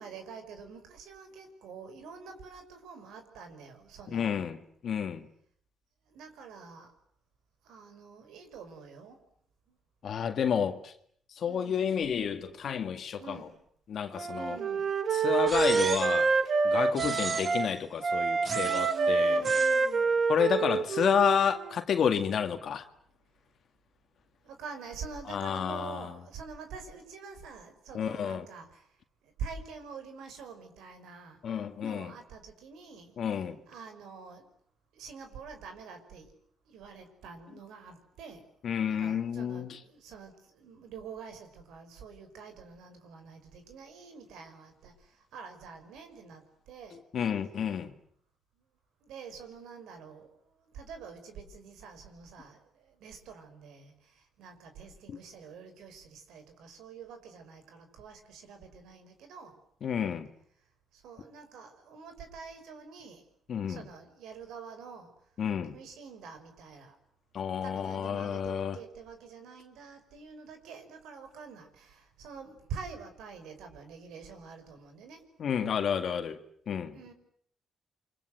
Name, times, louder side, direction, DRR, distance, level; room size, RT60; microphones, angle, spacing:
voice 1, 0.0-4.5 6.1-6.9 7.6-9.2 9.7-9.8 11.4-11.9 13.2-13.5 14.3-14.9 16.9-17.4 18.6-20.3 24.4-28.9 29.2-31.4 31.8-33.1 33.7-34.5 34.9-36.3 36.7-38.5 38.9-47.0 49.0-50.4 50.7-59.5 60.9-63.2 63.7-65.1 65.7-67.0 67.6-75.2 76.9-77.1, right 5 dB, 85° right, 5.8 m, -46 dB
voice 2, 4.1-4.6 4.8-5.3 10.0-10.9 11.4-13.4 13.9-14.6 15.1-16.3 16.6-19.4 20.3-22.8 25.3-26.2 27.9-28.5 31.4-32.2 33.2-33.6 38.6-39.8 46.9-47.9 55.1-55.2 59.8-60.3 63.5-63.9 65.4-65.7 67.3-68.8 75.4-76.4 76.7-77.0, left 7 dB, 60° left, 2.0 m, -30 dB
Wind instrument woodwind instrument, 14.1-17.7 18.0-21.8, right 4 dB, 55° right, 2.3 m, -27 dB
sound 1, 15.5-16.3 17.0-17.7 18.5-19.0 19.4-19.8, right 4 dB, 35° right, 1.4 m, -37 dB
29.0 x 25.0 x 7.9 m
cardioid pair, 90°, 0 cm